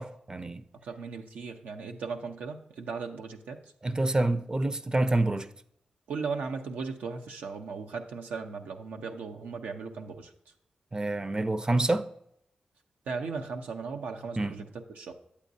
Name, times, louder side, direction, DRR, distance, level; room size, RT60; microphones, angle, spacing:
voice 1, 0.0-0.6 3.8-5.5 10.9-12.1 14.4-14.5, right 2 dB, 30° right, 0.5 m, -27 dB
voice 2, 0.8-3.6 6.1-10.3 13.1-15.1, right 5 dB, 90° right, 0.6 m, -37 dB
8.4 x 8.4 x 2.7 m
cardioid pair, 45°, 3 cm